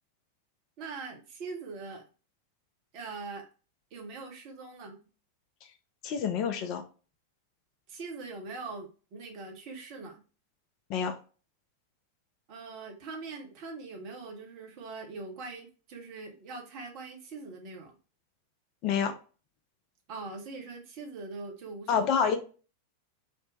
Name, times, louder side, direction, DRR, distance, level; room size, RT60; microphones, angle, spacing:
voice 1, 0.8-2.0 2.9-3.5 3.9-5.0 7.9-10.2 12.5-17.9 20.1-22.1, right 3 dB, 45° right, 0.8 m, -42 dB
voice 2, 6.0-6.8 10.9-11.2 18.8-19.1 21.9-22.4, left 7 dB, 40° left, 0.4 m, -27 dB
2.5 x 2.1 x 3.1 m
figure-of-eight pair, 90°, 0 cm